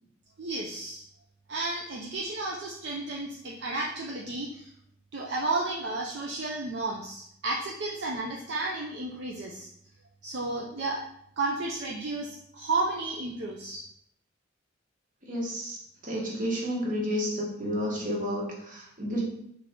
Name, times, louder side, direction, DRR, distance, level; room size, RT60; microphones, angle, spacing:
voice 1, 0.4-1.0 1.5-4.7 5.1-9.7 10.2-11.0 11.4-13.8, right 2 dB, 60° right, -2 dB, 0.5 m, -32 dB
voice 2, 15.3-15.8 16.0-19.2, equal, 45° right, -4 dB, 1.2 m, -31 dB
3.8 x 3.3 x 3.6 m, 0.72 s
head